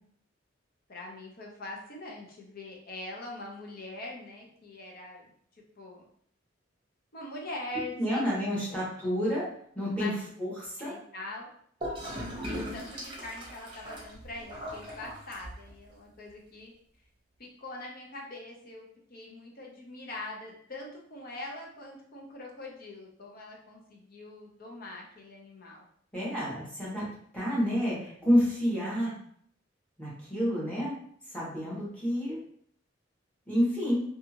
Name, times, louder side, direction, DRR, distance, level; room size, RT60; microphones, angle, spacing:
voice 1, 0.9-5.3 5.8-6.1 7.1-8.3 8.7-8.8 10.0-10.2 10.8-11.5 12.4-16.7 17.4-25.8, left 2 dB, 50° left, -1 dB, 0.7 m, -43 dB
voice 2, 8.0-9.5 9.7-10.9 26.1-27.0 27.3-29.2 30.0-30.9 31.3-32.4 33.5-34.0, equal, 5° left, -8 dB, 1.1 m, -29 dB
Gurgling / Toilet flush, 11.8-15.8, equal, 25° right, 0.8 m, -39 dB
2.7 x 2.4 x 2.8 m, 0.63 s
head